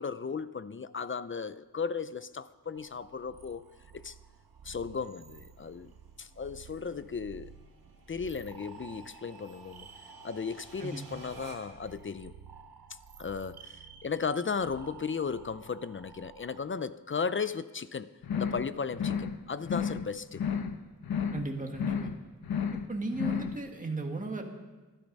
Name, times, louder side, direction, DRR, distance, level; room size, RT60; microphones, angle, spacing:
voice 1, 0.0-3.7 3.9-4.1 4.6-5.9 6.2-7.5 8.1-9.9 10.2-12.3 13.2-20.4, left 5 dB, 35° left, 15 dB, 0.4 m, -35 dB
sound 1, 1.7-11.9, right 2 dB, 60° right, 3.0 m, -55 dB
sound 2, 2.7-16.6, right 6 dB, 85° right, 1.2 m, -53 dB
sound 3, 18.2-18.7 18.9-19.4 19.6-20.1 20.3-20.8 21.0-21.5 21.7-22.2 22.4-22.9 23.1-23.6, left 7 dB, 75° left, 1.0 m, -32 dB
voice 2, 21.3-22.1 22.7-24.4, right 2 dB, 20° right, 2 dB, 1.7 m, -36 dB
21.5 x 12.0 x 5.4 m, 1.2 s
wide cardioid pair, 170°, 37 cm